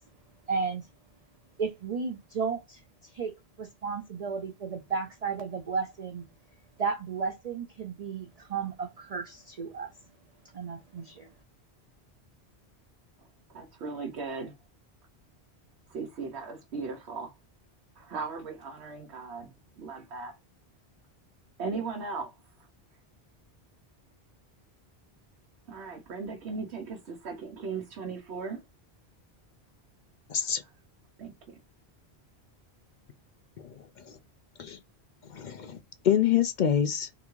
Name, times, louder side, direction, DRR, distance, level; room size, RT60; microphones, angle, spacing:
voice 1, 0.5-0.9 1.6-2.8 3.1-6.2 6.8-9.9 10.5-11.3, right 5 dB, 45° right, 0.6 m, -33 dB
voice 2, 13.5-14.5 15.9-17.3 18.0-20.4 21.6-22.3 25.7-28.6 30.4-30.7 31.2-31.3, right 4 dB, 85° right, 1.1 m, -37 dB
voice 3, 30.3-30.6 34.1-34.2 34.6-34.8 35.3-35.8 36.0-37.1, left 9 dB, 55° left, 0.6 m, -26 dB
3.9 x 3.4 x 3.1 m
omnidirectional pair, 1.1 m